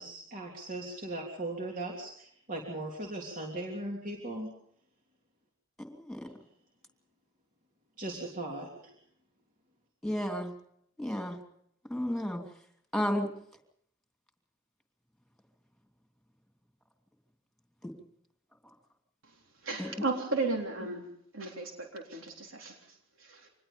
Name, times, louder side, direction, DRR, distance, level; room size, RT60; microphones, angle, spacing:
voice 1, 0.0-4.5 8.0-8.9, right 2 dB, 45° right, 0 dB, 3.2 m, -38 dB
voice 2, 5.8-6.2 10.0-10.5 11.0-11.4 11.9-12.4 12.9-13.3 17.8-17.9 19.8-19.9, equal, ahead, 4 dB, 2.9 m, -32 dB
voice 3, 19.6-23.5, right 3 dB, 75° right, 1 dB, 3.8 m, -35 dB
25.5 x 20.5 x 5.3 m, 0.69 s
head